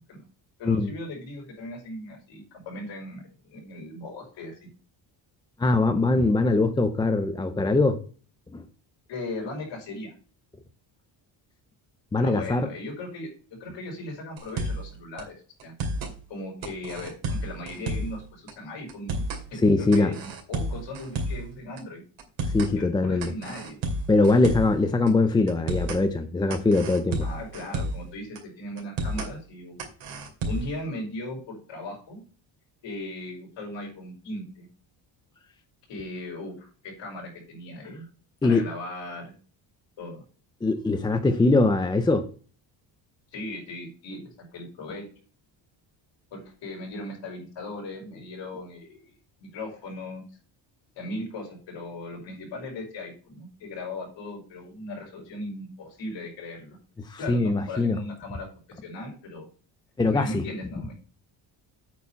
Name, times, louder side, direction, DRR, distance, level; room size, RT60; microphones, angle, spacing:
voice 1, 0.6-4.6 9.1-10.1 12.2-13.3 13.6-15.7 16.3-22.0 22.7-23.8 27.2-29.8 30.5-32.2 32.8-34.7 35.9-38.0 38.4-39.3 40.0-40.2 43.3-45.0 46.3-49.1 49.4-50.2 51.0-56.8 57.2-58.5 58.8-59.5 60.1-60.9, left 2 dB, 70° left, 4.5 m, -38 dB
voice 2, 5.6-8.0 8.5-8.6 12.1-12.7 19.6-20.1 22.4-23.3 24.1-27.3 38.4-38.7 40.6-42.3 57.0-58.0 60.0-60.4, left 3 dB, 10° left, 0.4 m, -22 dB
sound 1, 14.4-14.9 15.2-15.3 15.6-16.1 16.6-18.2 18.5-18.6 18.9-19.4 19.9-21.5 21.8-21.9 22.2-22.7 23.2-24.8 25.1-25.2 25.5-26.0 26.5-28.1 28.4-28.5 28.8-29.3 29.8-30.8, right 1 dB, 80° right, 2.7 m, -31 dB
8.5 x 4.3 x 6.8 m
cardioid pair, 170°, 46 cm